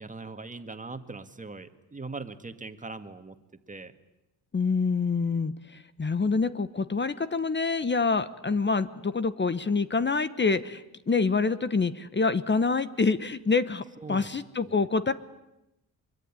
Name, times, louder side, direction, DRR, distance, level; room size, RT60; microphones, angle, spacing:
voice 1, 0.0-3.4 3.7-3.9 14.0-14.3 14.6-14.7, right 3 dB, 20° right, 9 dB, 2.0 m, -40 dB
voice 2, 4.5-13.8 14.1-15.1, left 4 dB, 25° left, 13 dB, 1.1 m, -26 dB
24.0 x 23.5 x 9.9 m, 0.92 s
cardioid pair, 100°, 40 cm